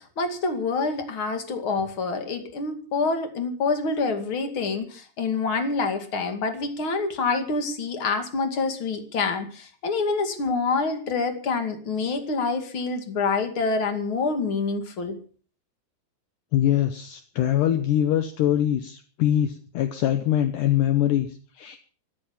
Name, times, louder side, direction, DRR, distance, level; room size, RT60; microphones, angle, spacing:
voice 1, 0.0-15.2, left 4 dB, 35° left, 7 dB, 2.5 m, -27 dB
voice 2, 16.5-21.8, left 11 dB, 75° left, 9 dB, 1.9 m, -23 dB
13.5 x 13.0 x 7.2 m, 0.43 s
omnidirectional pair, 4.9 m